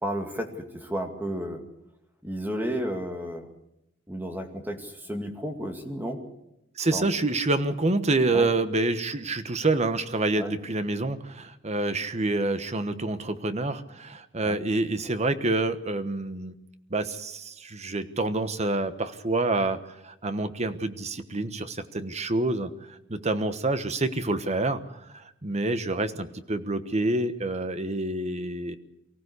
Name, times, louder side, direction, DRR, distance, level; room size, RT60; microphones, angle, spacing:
voice 1, 0.0-1.6 2.2-3.5 4.1-6.2 6.9-7.1 8.3-8.5 10.4-10.5 14.4-14.6, equal, 10° right, 4 dB, 2.3 m, -32 dB
voice 2, 6.8-16.5 16.9-19.8 20.0-24.8 25.1-28.8, right 2 dB, 35° right, 11 dB, 1.2 m, -27 dB
24.0 x 15.5 x 8.2 m, 0.86 s
head